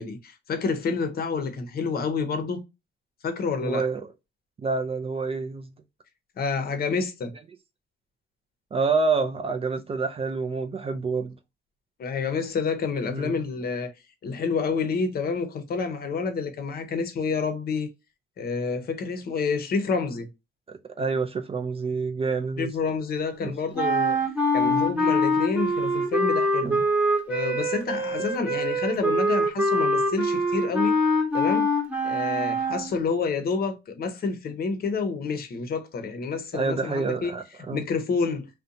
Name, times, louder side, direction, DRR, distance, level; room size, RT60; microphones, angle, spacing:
voice 1, 0.0-2.6 3.2-3.8 6.4-7.3 12.0-13.9 14.2-17.9 18.4-20.3 22.6-24.2 24.5-26.8 27.3-31.0 31.3-31.7 32.0-37.3 37.7-38.5, left 5 dB, 50° left, 0.7 m, -28 dB
voice 2, 3.6-4.1 4.6-5.6 8.7-11.3 13.1-13.3 20.7-22.7 23.4-23.5 24.6-24.9 26.6-26.8 36.5-37.9, right 4 dB, 30° right, 0.3 m, -28 dB
sound 1, 23.8-32.9, equal, 5° right, 0.9 m, -24 dB
2.6 x 2.2 x 2.5 m
cardioid pair, 90°, 20 cm